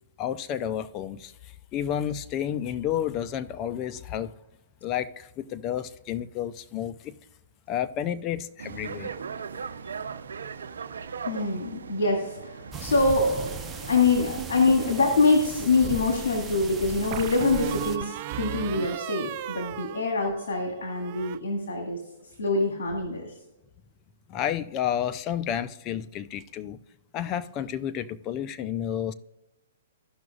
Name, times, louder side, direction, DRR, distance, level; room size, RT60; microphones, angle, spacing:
voice 1, 0.2-4.3 4.8-7.1 7.7-9.1 24.3-26.8 27.1-29.1, left 10 dB, 30° left, 0.5 m, -31 dB
sound 1, 8.6-14.0, right 6 dB, 85° right, 0.7 m, -38 dB
voice 2, 11.2-22.0 22.4-23.3, left 3 dB, 75° left, 2.1 m, -25 dB
sound 2, 12.7-18.0, right 5 dB, 15° right, 0.7 m, -38 dB
sound 3, 14.4-15.2 17.1-20.6 20.9-21.4, right 14 dB, 40° right, 0.4 m, -35 dB
15.5 x 6.0 x 2.4 m
hypercardioid pair, 140°, 0 cm